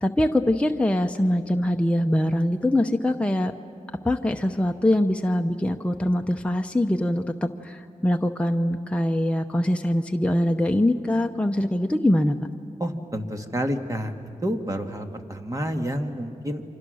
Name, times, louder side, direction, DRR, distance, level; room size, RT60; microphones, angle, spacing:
voice 1, 0.0-3.5 4.0-12.4, left 1 dB, 10° left, 4 dB, 0.8 m, -23 dB
voice 2, 12.8-14.1 14.4-16.6, equal, 25° right, 4 dB, 1.8 m, -29 dB
29.5 x 25.0 x 6.4 m, 2.4 s
wide cardioid pair, 75°, 14 cm